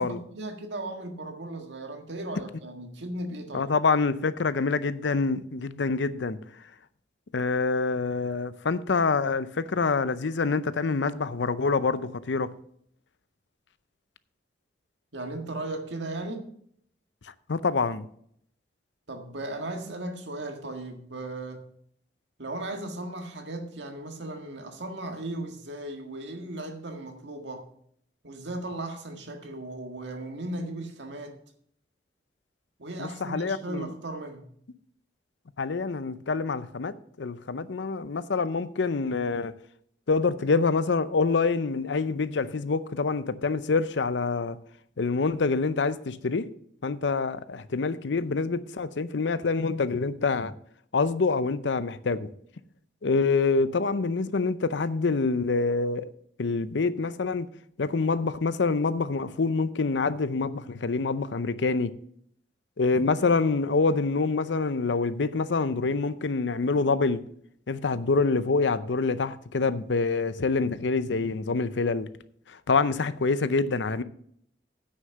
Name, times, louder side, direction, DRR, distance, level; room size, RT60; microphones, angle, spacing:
voice 1, 0.0-3.7 15.1-16.5 19.1-21.6 22.4-27.7 28.2-31.4 32.8-34.5, right 2 dB, 80° right, 1.7 m, -36 dB
voice 2, 3.5-6.4 7.3-12.5 17.5-18.1 33.0-33.9 35.6-39.5 40.1-44.6 45.0-46.5 46.8-50.5 50.9-52.3 53.0-56.1 56.4-57.5 57.8-61.9 62.8-67.2 67.7-72.1 72.7-74.0, left 4 dB, 80° left, 0.6 m, -26 dB
9.4 x 6.5 x 6.5 m
head